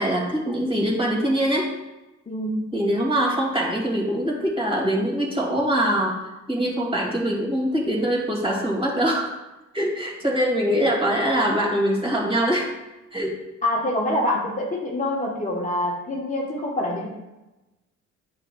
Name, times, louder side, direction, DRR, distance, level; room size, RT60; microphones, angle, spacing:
voice 1, 0.0-1.7 2.7-9.3 9.7-12.7 13.1-13.4, equal, 15° right, -2 dB, 2.3 m, -23 dB
voice 2, 2.3-2.7 13.6-17.1, left 1 dB, 25° left, -3 dB, 1.1 m, -25 dB
8.9 x 5.9 x 2.3 m, 1.0 s
cardioid pair, 90°, 30 cm